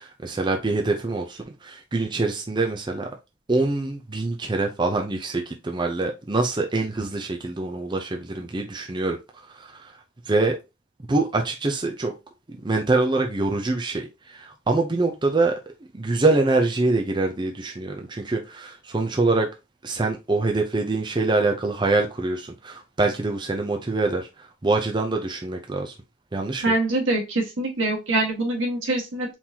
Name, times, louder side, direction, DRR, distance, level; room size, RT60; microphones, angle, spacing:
voice 1, 0.0-3.1 3.5-9.2 9.4-10.0 10.3-10.6 11.1-12.1 12.5-15.6 15.9-19.5 19.8-25.9 26.3-26.6, right 3 dB, 25° right, 0.5 m, -25 dB
voice 2, 26.6-29.3, right 2 dB, 80° right, 1.7 m, -24 dB
4.4 x 3.8 x 2.8 m
head